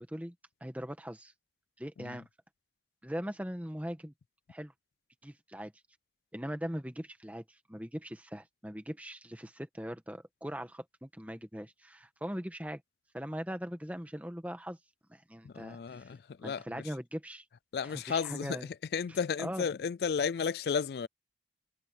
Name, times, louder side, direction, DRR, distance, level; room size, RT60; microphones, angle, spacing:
voice 1, 0.6-1.3 1.8-2.2 3.0-4.1 4.5-4.7 5.2-5.7 6.3-12.8 13.1-14.8 15.1-16.1 16.4-17.5 17.8-18.7 19.1-19.7, equal, 10° right, 1.6 m, -40 dB
voice 2, 15.4-16.8 17.7-18.6 18.9-21.1, left 6 dB, 60° left, 0.3 m, -33 dB
head